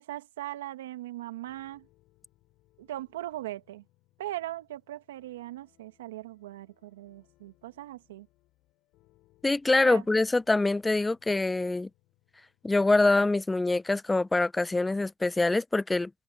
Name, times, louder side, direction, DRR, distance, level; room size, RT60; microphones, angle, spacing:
voice 1, 0.0-1.8 2.8-3.8 4.2-8.3 9.8-10.0, right 14 dB, 90° right, 1.7 m, -39 dB
sound 1, 1.4-13.2, left 18 dB, 70° left, 7.7 m, -68 dB
voice 2, 9.4-11.9 12.6-16.1, left 2 dB, 15° left, 0.6 m, -25 dB
hypercardioid pair, 65°, 0 cm